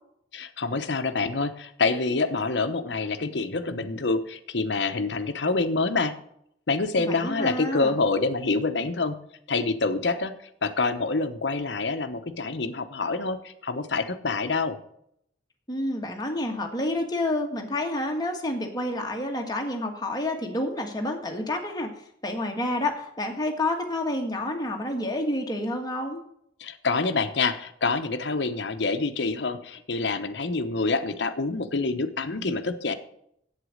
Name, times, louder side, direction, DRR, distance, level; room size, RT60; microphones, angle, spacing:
voice 1, 0.3-6.1 6.7-9.2 9.5-10.3 10.6-14.8 26.6-32.9, left 3 dB, 65° left, 8 dB, 0.9 m, -26 dB
voice 2, 7.1-7.9 15.7-21.9 22.2-26.2, left 1 dB, 20° left, 2 dB, 1.5 m, -29 dB
8.3 x 8.2 x 6.4 m, 0.72 s
head